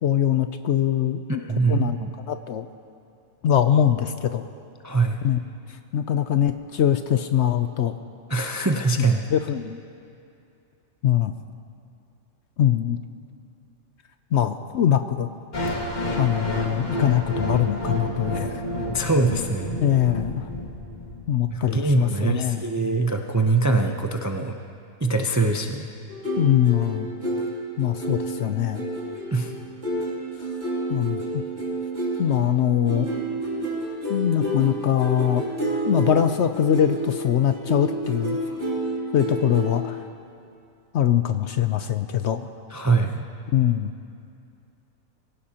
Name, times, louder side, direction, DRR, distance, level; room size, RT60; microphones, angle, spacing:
voice 1, 0.0-1.4 1.7-2.0 2.3-2.7 3.4-4.5 5.2-5.4 5.9-7.9 9.3-9.8 11.0-11.3 12.6-13.0 14.3-15.3 16.2-18.6 19.8-20.5 21.3-22.6 26.4-27.1 27.8-28.9 30.9-31.4 32.2-33.1 34.1-35.4 35.9-38.4 39.1-40.0 40.9-42.5 43.5-43.9, left 10 dB, 65° left, 9 dB, 0.7 m, -22 dB
voice 2, 1.3-2.1 4.8-5.2 8.3-9.2 18.9-19.8 21.5-24.5 25.0-25.9 29.3-29.5 42.7-43.3, right 3 dB, 30° right, 3 dB, 0.3 m, -23 dB
sound 1, 15.5-21.5, left 1 dB, 35° left, 1.5 m, -29 dB
sound 2, 26.1-39.7, right 1 dB, 45° right, 3.0 m, -30 dB
23.0 x 17.0 x 2.9 m, 2.6 s
omnidirectional pair, 1.5 m